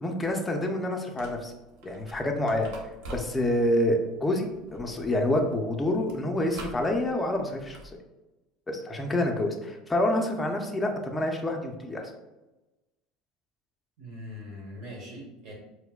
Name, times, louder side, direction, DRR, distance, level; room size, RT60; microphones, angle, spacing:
voice 1, 0.0-1.5 1.8-2.7 3.1-7.8 8.7-12.1, left 1 dB, 15° left, 2 dB, 0.5 m, -27 dB
sound 1, 1.1-8.0, right 2 dB, 75° right, 0.7 m, -47 dB
voice 2, 14.0-15.5, left 1 dB, 55° right, -3 dB, 1.5 m, -41 dB
4.3 x 2.1 x 2.3 m, 1.0 s
supercardioid pair, 110°, 0 cm